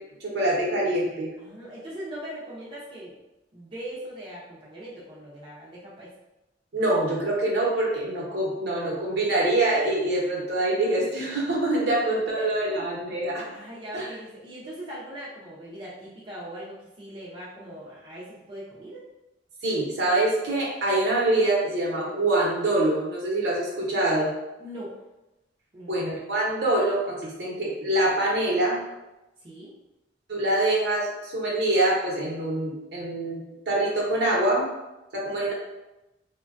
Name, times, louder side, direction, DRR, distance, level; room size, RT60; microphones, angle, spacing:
voice 1, 0.2-1.3 6.7-13.4 13.9-14.1 19.6-24.3 25.9-28.8 30.3-33.4 33.7-34.7 35.1-35.5, right 1 dB, 65° right, -4 dB, 0.8 m, -25 dB
voice 2, 1.4-3.2 3.5-6.1 12.0-12.5 12.7-12.9 13.5-19.0 24.6-25.0 25.7-26.0 29.4-29.7, right 1 dB, 30° right, -8 dB, 0.5 m, -40 dB
3.1 x 2.2 x 2.5 m, 0.97 s
head